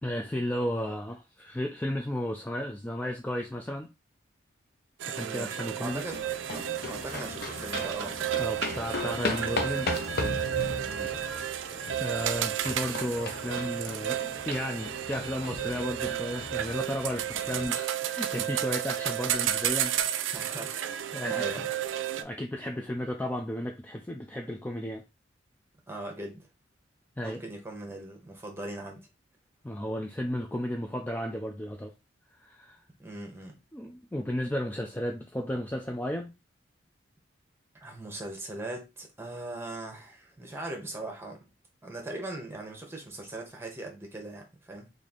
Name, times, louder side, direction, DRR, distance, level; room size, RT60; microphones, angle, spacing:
voice 1, 0.0-3.9 5.1-6.0 8.4-9.9 12.0-19.9 20.2-20.6 21.1-21.6 22.2-25.0 27.2-27.4 29.6-31.9 32.3-32.8 33.7-36.3, equal, 10° left, 0.3 m, -34 dB
sound 1, 5.0-22.2, right 11 dB, 85° right, 0.4 m, -32 dB
voice 2, 5.2-6.2 6.5-8.3 10.8-11.3 20.3-20.8 21.3-21.7 25.9-26.5 27.2-29.1 33.0-33.6 37.7-41.5 41.8-44.9, right 2 dB, 15° right, 1.1 m, -40 dB
sound 2, 5.9-17.7, left 3 dB, 55° left, 0.7 m, -37 dB
3.1 x 2.6 x 3.9 m
head